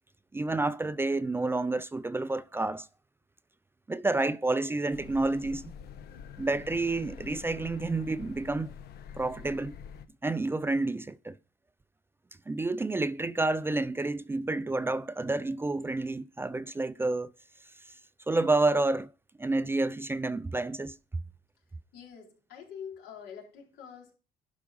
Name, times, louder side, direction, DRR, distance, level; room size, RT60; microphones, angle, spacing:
voice 1, 0.3-2.9 3.9-5.7 6.4-8.7 9.2-9.7 10.2-11.4 12.5-17.3 18.3-19.1 19.4-21.0, right 2 dB, 15° right, 0.4 m, -29 dB
sound 1, 4.9-10.1, left 7 dB, 70° left, 1.0 m, -46 dB
voice 2, 21.9-24.2, left 7 dB, 85° left, 4.2 m, -45 dB
11.5 x 4.9 x 5.2 m
cardioid pair, 110°, 17 cm